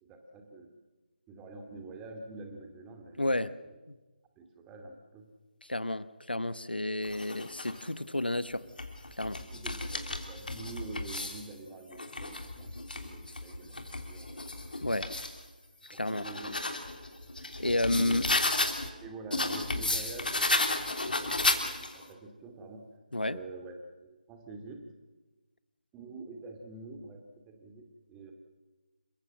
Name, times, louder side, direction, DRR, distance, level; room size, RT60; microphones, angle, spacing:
voice 1, 0.0-0.7 1.3-3.8 4.4-5.2 9.5-12.7 12.9-14.4 15.9-16.9 17.9-18.3 19.0-22.8 23.2-24.8 25.9-28.3, right 3 dB, 10° right, 3 dB, 2.2 m, -46 dB
voice 2, 3.2-3.5 5.6-8.6 9.2-9.4 14.8-15.1 15.9-16.3 17.6-18.2 23.1-23.4, left 1 dB, 85° left, 15 dB, 1.0 m, -31 dB
sound 1, 7.0-7.8 8.5-11.5 11.9-15.4 15.8-18.9 19.3-22.1, left 2 dB, 65° left, 3.3 m, -33 dB
28.5 x 15.5 x 7.7 m, 1.2 s
figure-of-eight pair, 155°, 5 cm